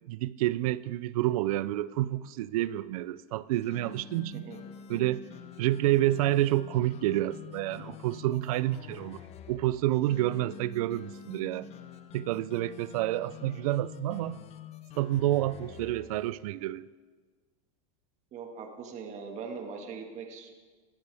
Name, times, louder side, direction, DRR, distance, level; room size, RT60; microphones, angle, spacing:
voice 1, 0.1-4.5 4.9-5.2 5.6-9.2 9.5-11.7 12.1-14.4 14.9-16.8, right 15 dB, 80° right, 0.5 m, -29 dB
sound 1, 3.5-16.3, left 9 dB, 35° left, 0.8 m, -47 dB
voice 2, 18.3-20.5, right 5 dB, 40° right, 1.8 m, -41 dB
19.0 x 11.5 x 3.5 m
supercardioid pair, 130°, 18 cm